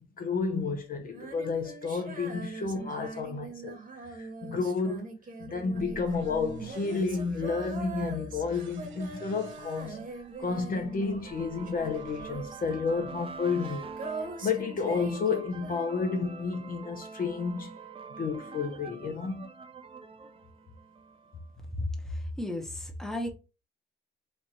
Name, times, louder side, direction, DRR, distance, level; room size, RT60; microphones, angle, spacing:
voice 1, 0.2-3.8 4.0-5.1 5.4-10.0 10.4-13.9 14.4-17.7 18.2-19.5, left 4 dB, 45° left, 0.7 m, -31 dB
Female singing, 1.1-11.4 11.7-16.1, right 3 dB, 45° right, 1.2 m, -42 dB
sound 1, 5.8-13.6, right 4 dB, 70° right, 0.7 m, -49 dB
sound 2, 9.7-21.5, right 5 dB, 30° right, 0.5 m, -46 dB
voice 2, 21.8-23.3, left 1 dB, ahead, 0.9 m, -33 dB
3.2 x 2.5 x 4.1 m
cardioid pair, 90°, 20 cm